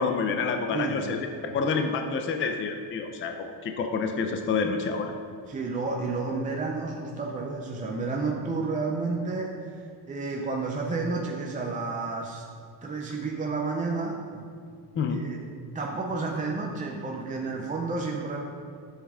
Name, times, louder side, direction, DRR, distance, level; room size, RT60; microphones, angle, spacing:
voice 1, 0.0-5.1 14.9-15.2, left 5 dB, 30° left, 5 dB, 0.6 m, -28 dB
voice 2, 0.7-1.2 5.5-12.4 12.8-14.5 15.1-15.4 15.7-18.4, right 3 dB, 20° right, 0 dB, 0.6 m, -31 dB
12.0 x 7.3 x 3.6 m, 2.2 s
cardioid pair, 165°, 43 cm